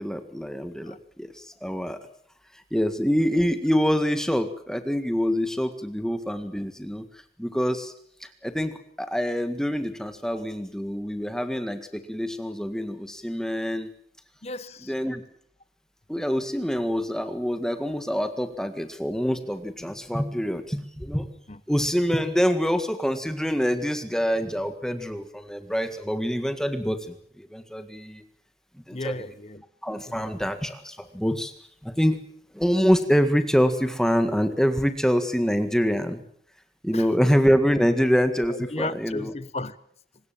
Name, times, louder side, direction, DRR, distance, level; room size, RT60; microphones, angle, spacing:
voice 1, 0.0-2.0 2.7-7.1 7.4-7.9 8.4-13.9 14.9-15.2 16.1-21.3 21.7-28.2 28.9-29.1 29.8-31.5 31.8-32.2 32.5-36.2 36.8-39.3, equal, 5° left, 9 dB, 1.8 m, -25 dB
voice 2, 14.4-14.9 21.5-21.6 28.9-29.6 30.1-30.4 36.9-37.1 38.5-39.8, left 2 dB, 35° left, 16 dB, 1.0 m, -34 dB
24.0 x 20.5 x 7.5 m, 0.66 s
head